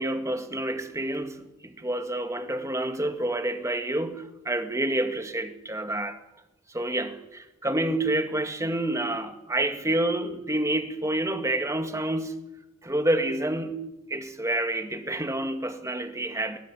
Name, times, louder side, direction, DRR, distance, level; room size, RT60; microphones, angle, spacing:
voice 1, 0.0-6.2 6.7-12.4 12.8-16.6, right 1 dB, 15° right, 7 dB, 2.1 m, -28 dB
21.0 x 19.5 x 10.0 m, 0.95 s
head